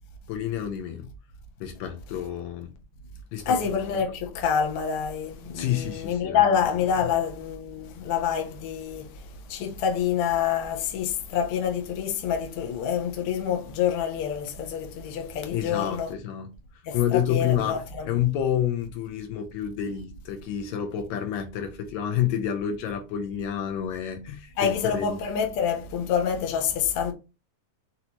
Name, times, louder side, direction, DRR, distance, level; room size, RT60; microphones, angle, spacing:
voice 1, 0.3-1.1 1.6-2.7 3.3-3.7 5.5-6.5 15.5-16.5 16.9-25.2, left 10 dB, 80° left, 1.8 m, -29 dB
voice 2, 3.4-16.1 16.8-18.2 24.6-27.1, left 7 dB, 65° left, 1.5 m, -27 dB
5.9 x 2.7 x 2.9 m
omnidirectional pair, 3.3 m